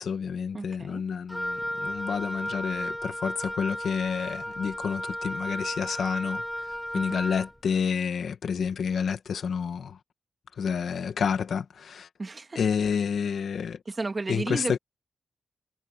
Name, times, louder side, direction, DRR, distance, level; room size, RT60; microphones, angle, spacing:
voice 1, 0.0-10.0 10.6-12.1 12.6-13.8 14.3-14.8, left 6 dB, 65° left, 1.9 m, -29 dB
voice 2, 0.5-1.0 6.9-7.0 12.2-12.6 13.9-14.8, right 3 dB, 25° right, 1.8 m, -33 dB
Wind instrument woodwind instrument, 1.3-7.5, equal, ahead, 0.7 m, -34 dB
wide cardioid pair, 140°, 0 cm